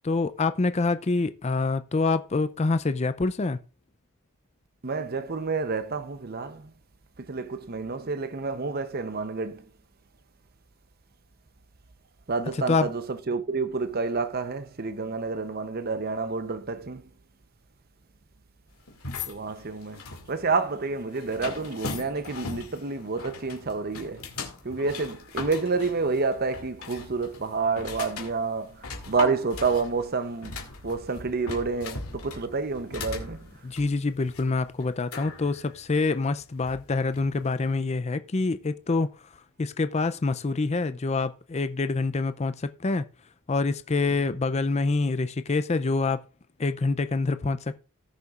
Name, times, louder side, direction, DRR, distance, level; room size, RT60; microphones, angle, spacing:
voice 1, 0.0-3.6 12.7-12.9 33.6-39.1 39.6-43.1 43.5-46.2 46.6-47.8, left 3 dB, 30° left, 0.5 m, -26 dB
voice 2, 4.8-6.7 7.2-9.7 12.3-17.1 19.3-24.3 24.6-30.6 30.8-33.5, right 4 dB, 45° right, 0.8 m, -29 dB
sound 1, 18.9-37.4, left 3 dB, 80° left, 2.3 m, -39 dB
18.0 x 6.8 x 2.5 m
head